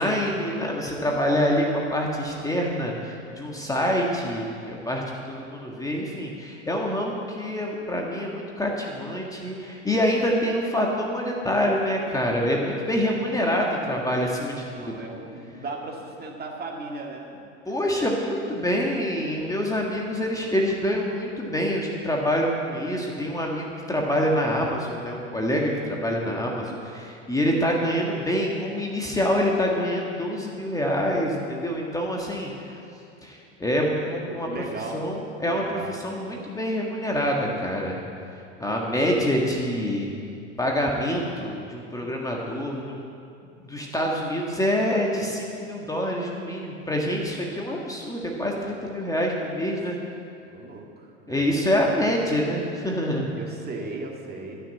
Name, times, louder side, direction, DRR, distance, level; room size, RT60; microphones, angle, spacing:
voice 1, 0.0-15.1 17.6-32.8 33.2-34.6 34.9-38.0 38.6-40.1 40.6-42.9 43.7-50.0 51.3-53.3, equal, 10° left, -1 dB, 1.7 m, -26 dB
voice 2, 14.7-17.4 34.3-35.0 35.4-35.9 49.4-49.7 50.5-51.6 52.0-52.1 53.4-54.6, right 3 dB, 25° right, 0 dB, 2.1 m, -37 dB
13.5 x 6.7 x 8.5 m, 2.5 s
hypercardioid pair, 95°, 35 cm